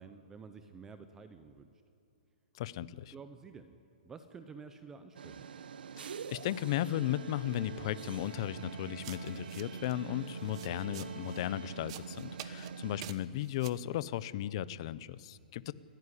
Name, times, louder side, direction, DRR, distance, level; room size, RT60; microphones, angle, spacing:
voice 1, 0.0-1.7 3.1-3.8 4.0-5.5, right 5 dB, 10° right, 9 dB, 0.6 m, -50 dB
voice 2, 2.5-3.1 6.0-15.7, left 13 dB, 35° left, 17 dB, 0.6 m, -36 dB
sound 1, 5.1-13.1, right 6 dB, 80° right, 1.1 m, -45 dB
sound 2, 6.6-12.3, right 3 dB, 65° right, 5.4 m, -52 dB
sound 3, 9.0-9.9 10.3-11.5 11.9-12.7 13.0-13.8, right 13 dB, 35° right, 0.9 m, -48 dB
28.5 x 15.0 x 10.0 m, 2.5 s
hypercardioid pair, 170°, 5 cm